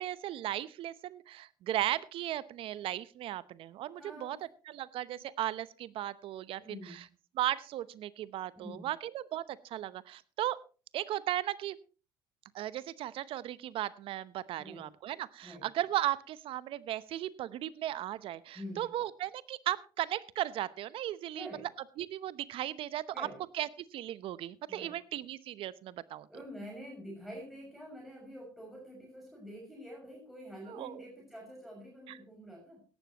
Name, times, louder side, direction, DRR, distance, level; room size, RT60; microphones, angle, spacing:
voice 1, 0.0-4.4 4.7-6.6 6.9-7.0 7.4-10.6 10.9-11.8 12.5-21.5 22.0-23.3 23.6-26.3 30.8-31.0, right 13 dB, 55° right, 18 dB, 0.8 m, -36 dB
voice 2, 3.9-4.4 6.6-7.1 8.6-8.9 14.5-14.9 15.4-15.7 18.5-19.0 21.3-21.7 23.1-23.4 24.7-25.0 26.3-32.9, equal, ahead, -3 dB, 6.2 m, -47 dB
17.0 x 12.0 x 3.0 m, 0.34 s
hypercardioid pair, 70°, 11 cm